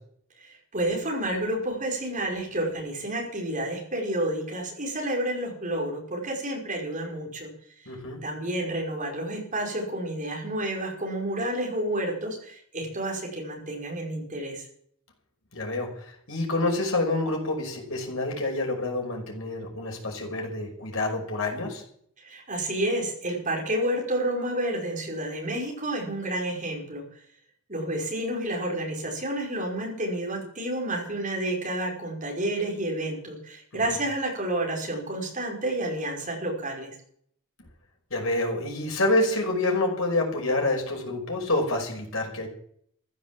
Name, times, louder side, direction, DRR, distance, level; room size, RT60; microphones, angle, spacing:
voice 1, 0.4-7.5 8.2-14.7 22.2-27.0 27.7-36.9, right 1 dB, 35° right, 0 dB, 5.3 m, -30 dB
voice 2, 7.9-8.2 15.5-21.8 38.1-42.5, left 2 dB, 65° left, 1 dB, 5.5 m, -27 dB
15.0 x 11.0 x 7.6 m, 0.64 s
head